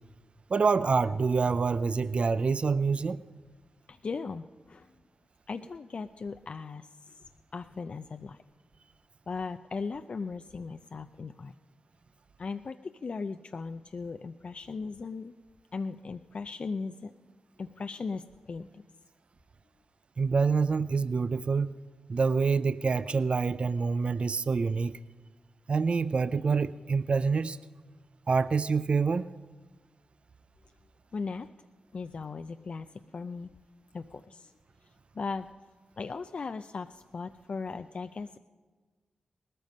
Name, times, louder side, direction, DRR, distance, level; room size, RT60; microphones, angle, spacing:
voice 1, 0.5-3.2 20.2-21.7 22.1-25.0 25.7-27.6 28.3-29.3, right 5 dB, 50° right, 14 dB, 0.5 m, -26 dB
voice 2, 3.9-4.9 5.5-7.2 7.5-8.4 9.3-11.6 12.4-15.3 15.7-17.1 17.6-18.8 31.1-31.5 31.9-33.5 33.9-34.5 35.1-35.5 36.0-38.4, left 4 dB, 55° left, 9 dB, 0.5 m, -38 dB
18.5 x 13.5 x 5.4 m, 1.4 s
supercardioid pair, 45°, 2 cm